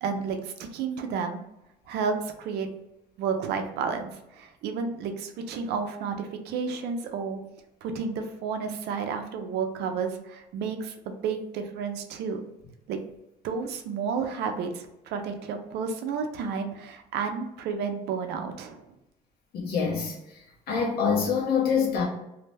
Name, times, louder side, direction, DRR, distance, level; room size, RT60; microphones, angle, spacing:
voice 1, 0.0-1.4 1.9-2.7 3.2-7.4 7.8-12.4 12.9-13.0 13.4-18.9, right 5 dB, 80° right, 0.5 m, -31 dB
voice 2, 19.5-20.1 20.7-22.1, left 6 dB, 65° left, 1.0 m, -25 dB
2.6 x 2.1 x 3.2 m
cardioid pair, 110°, 17 cm